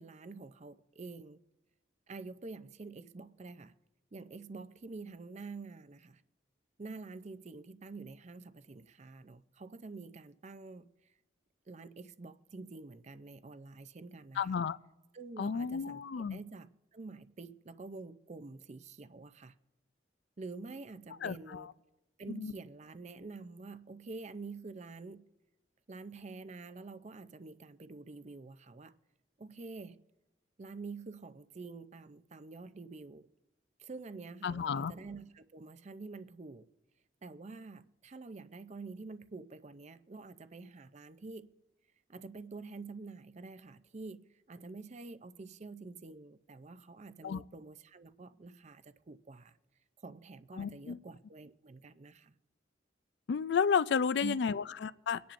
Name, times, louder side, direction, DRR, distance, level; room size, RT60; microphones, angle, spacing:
voice 1, 0.0-1.4 2.1-3.7 4.1-6.2 6.8-10.9 11.7-14.6 15.1-19.6 20.4-21.7 22.2-25.3 25.9-28.9 29.4-30.0 30.6-33.3 33.8-36.7 37.2-41.5 42.1-49.6 50.0-52.3 54.2-54.6, right 3 dB, 35° right, 0.5 m, -47 dB
voice 2, 14.4-14.8 15.4-16.4 21.2-21.7 22.3-22.5 34.4-34.9 47.2-47.4 50.6-51.0 53.3-55.3, left 6 dB, 65° left, 0.3 m, -32 dB
24.0 x 10.0 x 2.6 m
head